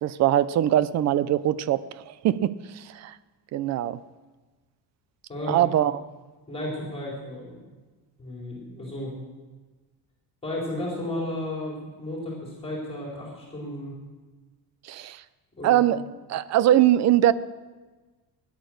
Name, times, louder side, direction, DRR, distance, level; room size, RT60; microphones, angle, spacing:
voice 1, 0.0-3.1 3.5-4.0 5.5-6.0 14.9-15.2 15.6-16.0 16.3-17.3, right 12 dB, 40° right, 16 dB, 0.5 m, -22 dB
voice 2, 5.3-5.7 6.5-7.6 8.2-9.1 10.4-13.9 15.5-15.9, left 1 dB, 15° left, -4 dB, 4.2 m, -33 dB
17.0 x 10.5 x 6.5 m, 1.3 s
cardioid pair, 170°, 41 cm